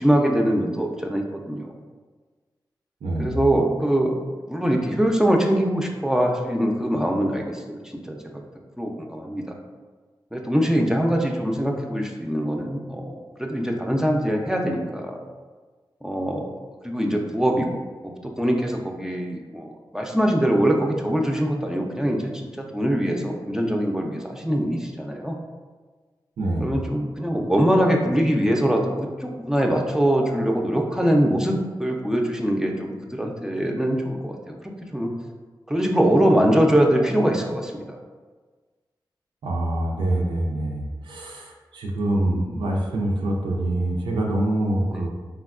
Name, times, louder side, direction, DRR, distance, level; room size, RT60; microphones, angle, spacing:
voice 1, 0.0-1.7 3.2-4.2 4.5-7.8 8.1-8.4 8.8-9.5 10.3-13.1 13.4-15.2 16.0-16.5 16.8-22.2 22.6-25.4 26.6-35.1 35.7-37.8 44.9-45.1, equal, 5° right, 1 dB, 0.4 m, -23 dB
voice 2, 3.0-3.4 26.4-26.8 39.4-45.1, right 1 dB, 85° right, -2 dB, 0.4 m, -25 dB
3.4 x 2.2 x 2.4 m, 1.4 s
cardioid pair, 45°, 8 cm